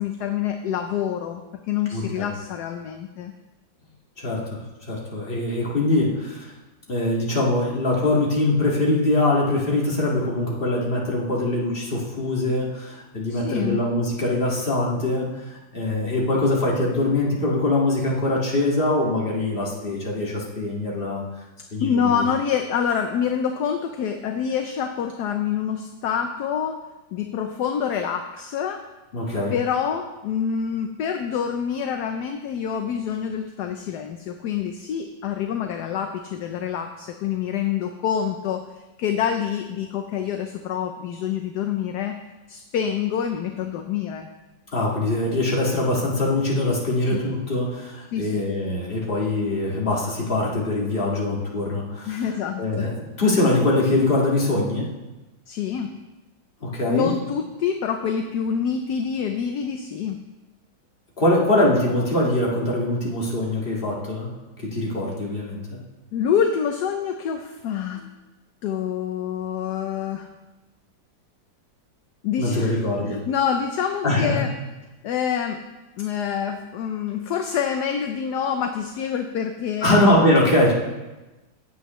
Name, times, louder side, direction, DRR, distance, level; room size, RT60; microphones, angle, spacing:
voice 1, 0.0-1.4 1.7-3.3 13.3-13.9 21.8-26.8 27.1-28.8 29.5-38.6 39.0-42.2 42.5-44.3 48.1-48.4 52.1-52.8 55.5-55.9 56.9-60.2 66.1-68.0 68.6-70.3 72.2-72.8 73.1-74.5 75.0-75.6 76.0-80.0, left 8 dB, 70° left, 6 dB, 1.1 m, -26 dB
voice 2, 1.9-2.3 4.2-4.6 4.9-6.5 6.9-21.2 21.7-22.2 29.1-29.5 44.7-52.2 52.6-54.9 56.6-57.1 61.2-64.3 64.6-65.8 68.0-68.1 72.4-73.2 74.0-74.4 79.8-80.7, left 2 dB, 30° left, -4 dB, 2.1 m, -23 dB
16.0 x 8.0 x 3.1 m, 1.1 s
omnidirectional pair, 2.0 m